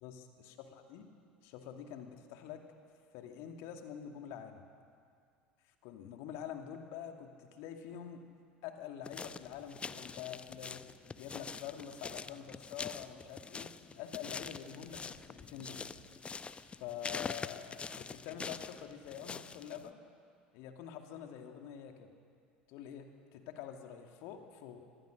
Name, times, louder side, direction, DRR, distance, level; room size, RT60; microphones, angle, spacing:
voice 1, 0.0-1.1 1.4-2.6 3.1-4.6 5.8-8.2 8.6-10.8 11.2-13.7 13.9-15.8 16.6-20.0 20.5-22.1 22.7-24.8, left 9 dB, 55° left, 5 dB, 2.3 m, -46 dB
sound 1, 9.0-19.9, left 5 dB, 20° left, 0.8 m, -45 dB
25.5 x 20.5 x 6.5 m, 2.2 s
figure-of-eight pair, 70°, 5 cm